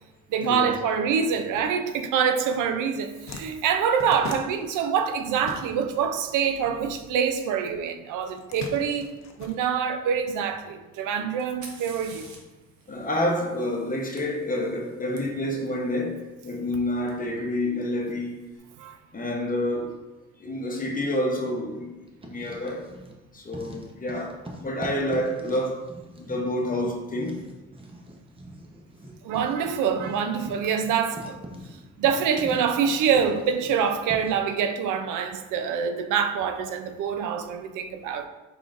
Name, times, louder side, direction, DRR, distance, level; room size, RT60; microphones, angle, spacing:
voice 1, 0.3-9.1 9.4-12.2 18.8-19.0 29.2-31.4 32.0-38.3, right 7 dB, 85° right, 0.5 m, -25 dB
sound 1, 2.9-6.1 6.4-7.5 8.2-10.2, left 4 dB, 65° left, 0.6 m, -40 dB
Fire, 11.4-15.2 17.1-17.2 18.0-18.4, right 4 dB, 70° right, 0.9 m, -49 dB
voice 2, 12.9-18.5 19.1-20.0 20.4-22.0 22.2-22.9 23.3-25.9 26.2-27.4 29.0-29.1, left 1 dB, 30° left, 0.8 m, -28 dB
Writing, 22.1-23.2 23.5-34.5, equal, 20° right, 0.7 m, -43 dB
4.9 x 3.7 x 2.5 m
cardioid pair, 90°, 30 cm